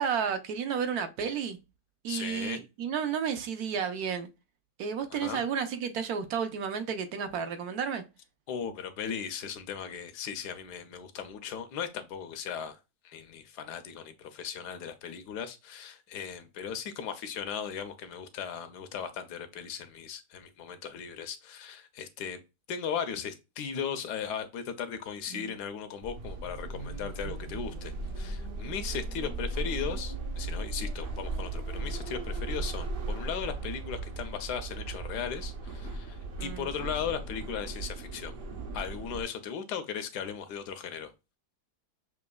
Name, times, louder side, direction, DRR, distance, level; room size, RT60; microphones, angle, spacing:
voice 1, 0.0-1.6 2.0-4.3 4.8-8.0 25.3-25.5 36.4-36.7, right 7 dB, 70° right, 1.1 m, -32 dB
voice 2, 2.1-2.6 5.1-5.4 8.5-12.8 13.0-22.4 22.7-38.3 38.7-41.1, left 7 dB, 75° left, 1.2 m, -37 dB
sound 1, 26.0-39.2, right 2 dB, 55° right, 0.6 m, -37 dB
6.1 x 2.9 x 2.3 m
omnidirectional pair, 1.8 m